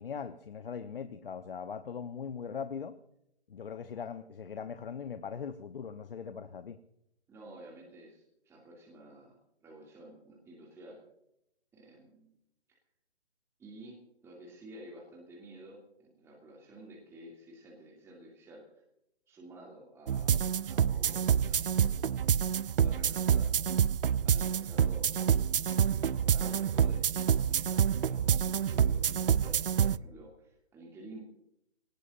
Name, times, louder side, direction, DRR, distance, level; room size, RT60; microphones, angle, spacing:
voice 1, 0.0-3.0 3.5-6.8, left 6 dB, 55° left, 11 dB, 1.0 m, -40 dB
voice 2, 7.3-11.0 11.7-12.3 13.6-18.6 19.3-23.5 24.2-25.2 25.9-31.2, right 1 dB, 10° right, -2 dB, 2.5 m, -52 dB
sound 1, 20.1-30.0, right 8 dB, 60° right, 0.5 m, -27 dB
23.0 x 18.5 x 2.6 m, 0.79 s
figure-of-eight pair, 145°, 32 cm